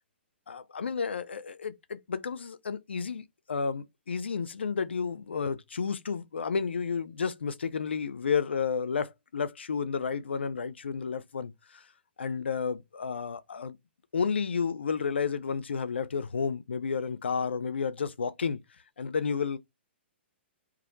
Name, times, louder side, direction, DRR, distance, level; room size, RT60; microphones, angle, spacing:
voice 1, 0.5-11.8 12.2-13.8 14.1-18.6 19.0-19.6, left 5 dB, 70° left, 0.4 m, -31 dB
2.4 x 2.0 x 2.5 m
figure-of-eight pair, 115°, 6 cm